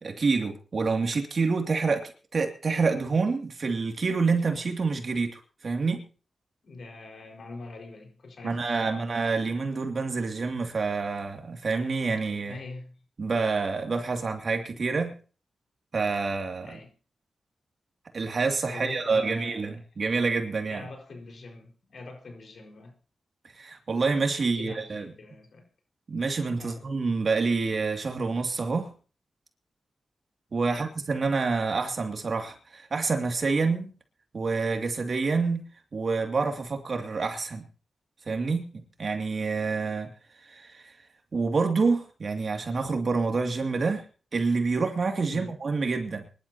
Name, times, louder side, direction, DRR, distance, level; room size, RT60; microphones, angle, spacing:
voice 1, 0.0-6.0 8.4-12.6 13.2-15.2 15.9-16.8 18.1-20.9 23.6-25.1 26.1-28.9 30.5-33.9 34.3-35.6 35.9-37.6 38.3-40.1 40.5-40.9 41.3-44.0 44.3-46.2, right 4 dB, 55° right, 4 dB, 2.6 m, -27 dB
voice 2, 6.6-9.0 12.5-13.0 16.6-17.0 18.7-19.8 20.7-22.9 24.4-25.6 26.6-26.8 30.7-30.9 45.3-45.6, left 3 dB, 70° left, 3 dB, 4.9 m, -43 dB
24.5 x 12.0 x 2.9 m, 0.37 s
cardioid pair, 70°, 0 cm